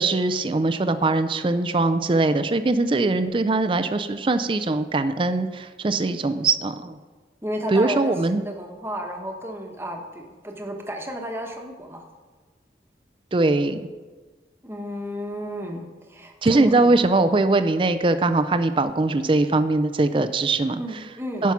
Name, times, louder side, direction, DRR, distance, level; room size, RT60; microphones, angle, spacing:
voice 1, 0.0-7.0 7.7-8.4 13.3-13.8 16.4-20.8 21.4-21.5, right 2 dB, 30° right, 10 dB, 0.4 m, -21 dB
voice 2, 7.4-12.0 14.6-17.0 20.8-21.5, equal, 15° right, 2 dB, 1.0 m, -33 dB
10.5 x 5.7 x 5.8 m, 1.4 s
head